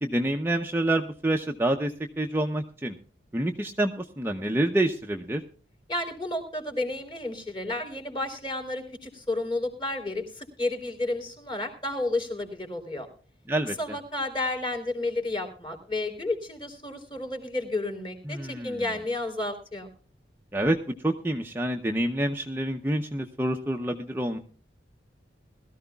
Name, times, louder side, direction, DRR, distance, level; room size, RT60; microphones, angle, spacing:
voice 1, 0.0-1.9 2.2-2.9 3.3-5.4 13.5-13.7 18.3-18.8 20.5-20.8 21.0-24.4, right 1 dB, 10° right, 3 dB, 0.7 m, -27 dB
voice 2, 5.9-13.1 13.7-19.9, left 2 dB, 25° left, 4 dB, 3.3 m, -31 dB
21.0 x 13.5 x 2.3 m, 0.41 s
head